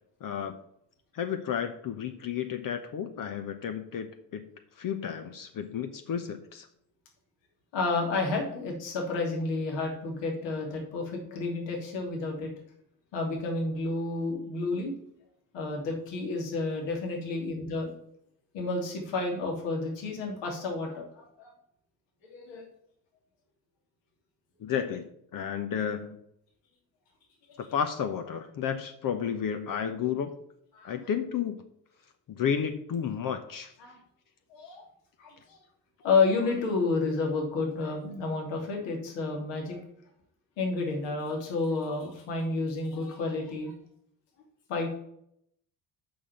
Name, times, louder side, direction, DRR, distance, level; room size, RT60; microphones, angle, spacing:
voice 1, 0.2-0.6 1.1-4.5 4.8-6.7 24.6-25.1 25.3-26.2 27.6-30.3 30.8-31.6 32.3-33.7, left 8 dB, 40° left, 8 dB, 1.0 m, -32 dB
voice 2, 7.7-12.5 13.1-14.9 15.5-17.9 18.5-21.5 22.2-22.7 30.7-31.0 33.8-34.0 34.5-34.9 35.2-35.6 36.0-39.8 40.6-43.7 44.7-45.0, left 3 dB, 60° left, 1 dB, 2.8 m, -30 dB
6.3 x 6.0 x 7.0 m, 0.73 s
figure-of-eight pair, 55°, 49 cm